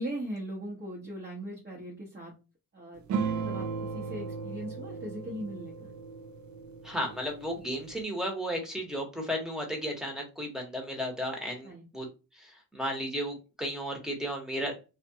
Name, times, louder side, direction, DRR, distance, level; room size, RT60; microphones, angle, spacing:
voice 1, 0.0-2.3 2.7-5.9 11.6-11.9, right 1 dB, 30° right, -2 dB, 0.9 m, -39 dB
sound 1, 3.1-8.0, right 5 dB, 55° right, 0.5 m, -36 dB
voice 2, 6.8-12.1 12.7-14.7, equal, ahead, 0 dB, 1.0 m, -34 dB
2.4 x 2.4 x 2.7 m, 0.30 s
cardioid pair, 80°, 36 cm